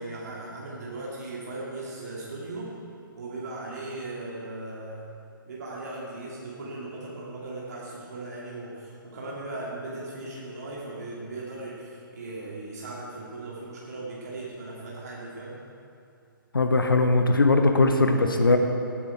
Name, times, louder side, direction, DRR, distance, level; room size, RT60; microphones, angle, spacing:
voice 1, 0.0-2.7 3.1-5.1 5.5-15.6, right 2 dB, 45° right, -6 dB, 2.8 m, -38 dB
voice 2, 16.5-18.6, left 2 dB, 70° left, 5 dB, 1.1 m, -20 dB
18.0 x 10.5 x 4.6 m, 2.5 s
figure-of-eight pair, 135°, 12 cm